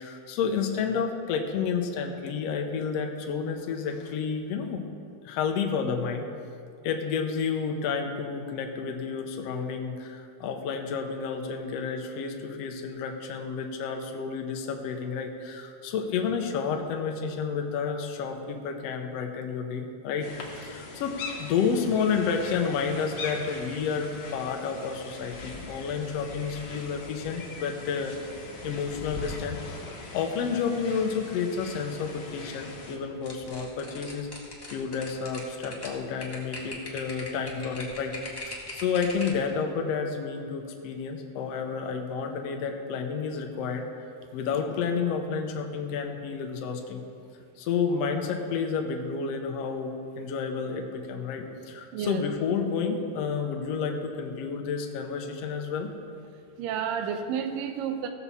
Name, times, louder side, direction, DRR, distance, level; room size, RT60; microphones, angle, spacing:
voice 1, 0.0-4.8 5.2-6.3 6.8-20.3 20.6-28.2 28.6-29.6 29.9-34.3 34.7-38.2 38.4-43.9 44.3-47.0 47.6-55.9, left 6 dB, 85° left, 3 dB, 1.4 m, -30 dB
sound 1, 20.2-33.0, left 3 dB, 55° left, 1.3 m, -41 dB
sound 2, 33.2-39.5, left 2 dB, 35° left, 0.3 m, -40 dB
voice 2, 51.9-52.2 56.6-58.1, right 7 dB, 80° right, 6 dB, 2.5 m, -31 dB
17.0 x 7.1 x 4.2 m, 2.4 s
omnidirectional pair, 4.0 m